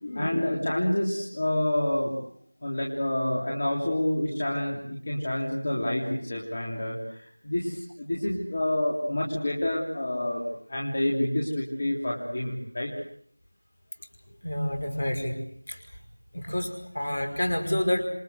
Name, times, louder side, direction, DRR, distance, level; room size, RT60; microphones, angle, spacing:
voice 1, 0.0-2.1 2.6-10.4 10.7-12.9, left 1 dB, 25° left, -3 dB, 3.4 m, -28 dB
voice 2, 14.4-15.4 15.7-15.8 16.3-18.0, left 1 dB, 45° left, 6 dB, 5.3 m, -28 dB
28.0 x 22.5 x 8.1 m, 0.65 s
figure-of-eight pair, 175°, 0 cm